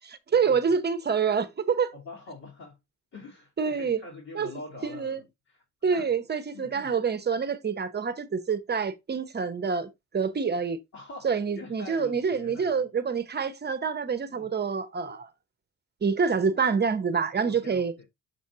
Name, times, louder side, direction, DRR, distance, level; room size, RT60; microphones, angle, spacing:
voice 1, 0.3-1.9 3.6-4.0 4.3-4.5 4.8-5.2 5.8-10.8 11.2-15.3 16.0-17.9, right 6 dB, 35° right, 0.8 m, -27 dB
voice 2, 1.9-2.8 3.1-5.6 5.9-6.2 6.5-6.9 10.9-12.8 14.3-14.5 17.4-18.1, left 2 dB, 65° left, 2.9 m, -44 dB
6.8 x 5.1 x 2.8 m
cardioid pair, 90°, 30 cm